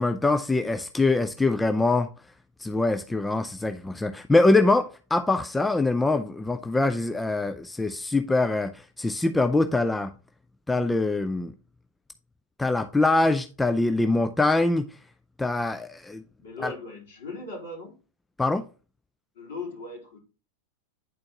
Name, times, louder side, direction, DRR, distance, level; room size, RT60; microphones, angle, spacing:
voice 1, 0.0-2.1 2.6-10.1 10.7-11.5 12.6-14.9 15.4-16.2 16.6-16.7 18.4-18.6, left 2 dB, 5° left, 0.4 m, -23 dB
voice 2, 16.4-17.9 19.3-20.2, left 3 dB, 60° left, 3.3 m, -38 dB
9.5 x 4.3 x 2.8 m
figure-of-eight pair, 90°, 0 cm